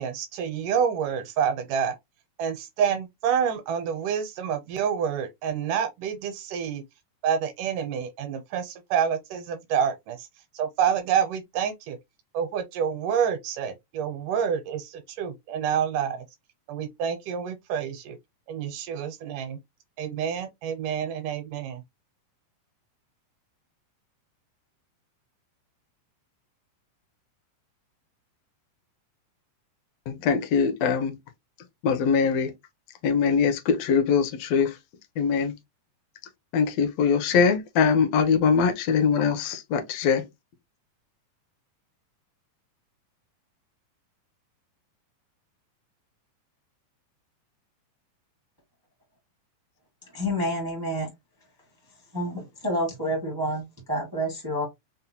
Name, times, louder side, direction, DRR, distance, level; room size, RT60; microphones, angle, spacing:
voice 1, 0.0-2.0 2.4-6.8 7.2-12.0 12.3-16.3 16.7-18.2 18.5-19.6 20.0-21.8, right 8 dB, 80° right, 2.2 m, -28 dB
voice 2, 30.1-31.2 31.8-32.5 33.0-34.8 35.2-35.5 36.5-40.3, left 6 dB, 75° left, 1.6 m, -22 dB
voice 3, 50.1-51.1 52.1-54.6, equal, 35° right, 0.3 m, -28 dB
5.4 x 2.1 x 2.7 m
omnidirectional pair, 3.8 m